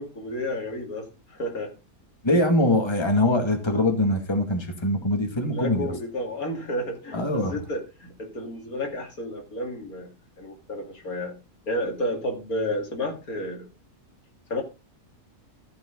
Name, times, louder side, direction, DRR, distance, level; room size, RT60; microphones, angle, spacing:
voice 1, 0.0-1.7 5.5-10.1 10.4-11.3 11.7-13.7 14.5-14.6, left 1 dB, 75° left, 2.9 m, -31 dB
voice 2, 2.2-5.9 7.1-7.6, left 1 dB, 20° left, 2.1 m, -23 dB
14.0 x 7.2 x 3.9 m
omnidirectional pair, 1.6 m